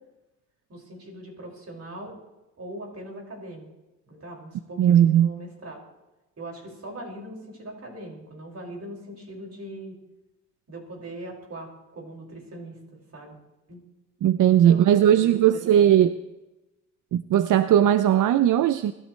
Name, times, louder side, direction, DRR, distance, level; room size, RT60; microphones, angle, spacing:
voice 1, 0.7-2.2 2.6-3.7 4.1-5.8 6.4-10.0 10.7-12.8 13.1-13.3 13.7-13.8 14.5-16.1, right 1 dB, 55° right, 0 dB, 5.7 m, -40 dB
voice 2, 4.8-5.3 14.2-16.2 17.1-18.9, right 10 dB, 85° right, 13 dB, 0.5 m, -18 dB
23.5 x 12.5 x 3.2 m, 1.0 s
cardioid pair, 80°, 30 cm